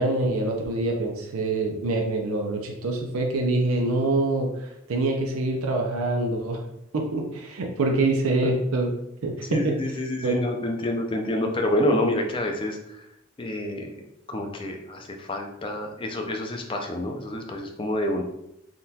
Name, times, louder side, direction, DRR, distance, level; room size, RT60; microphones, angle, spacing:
voice 1, 0.0-6.6 6.9-8.9 9.2-9.7 10.2-10.4, right 2 dB, 90° right, 1 dB, 0.5 m, -25 dB
voice 2, 9.5-13.0 13.4-13.9 14.3-18.2, left 1 dB, 25° left, 3 dB, 0.4 m, -28 dB
3.6 x 2.3 x 2.7 m, 0.82 s
head